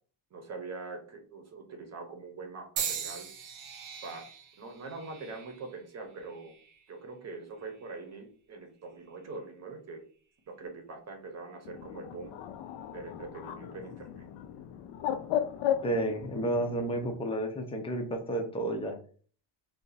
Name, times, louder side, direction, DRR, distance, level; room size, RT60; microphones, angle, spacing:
voice 1, 0.3-3.3 4.0-4.3 4.6-6.6 6.9-10.0 10.5-12.4 12.9-14.3, right 3 dB, 35° right, 4 dB, 0.9 m, -43 dB
sound 1, 2.8-6.9 7.6-8.0 9.0-9.2, right 8 dB, 75° right, 0.9 m, -40 dB
Bird, 11.6-17.2, left 10 dB, 75° left, 0.5 m, -36 dB
voice 2, 15.8-19.0, right 1 dB, 10° left, 3 dB, 0.6 m, -31 dB
2.8 x 2.6 x 3.9 m, 0.43 s
cardioid pair, 140°, 46 cm